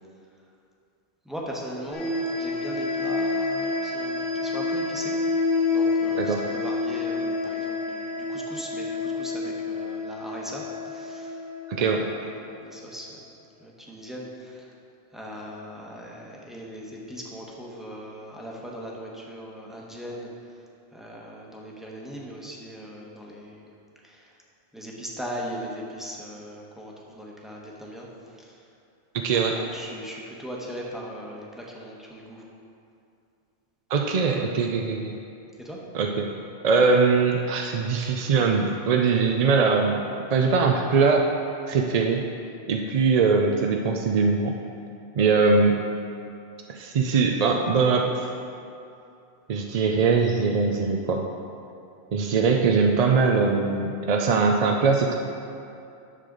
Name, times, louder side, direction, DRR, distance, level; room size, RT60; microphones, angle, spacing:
voice 1, 1.2-5.1 5.7-11.4 11.7-13.3 13.6-14.7 15.1-20.3 20.9-23.7 24.0-24.3 24.7-28.1 28.4-28.6 29.3-32.4 35.6-35.8, equal, ahead, -4 dB, 1.0 m, -39 dB
sound 1, 1.9-12.4, left 3 dB, 85° left, 2.8 m, -28 dB
voice 2, 11.7-12.0 29.1-29.6 33.9-35.2 35.9-36.3 36.6-40.0 40.3-41.3 41.7-42.3 42.7-44.6 45.2-45.7 46.7-48.3 49.5-51.2 52.1-55.2, right 4 dB, 50° right, 2 dB, 0.5 m, -21 dB
9.9 x 6.6 x 3.8 m, 2.6 s
omnidirectional pair, 1.1 m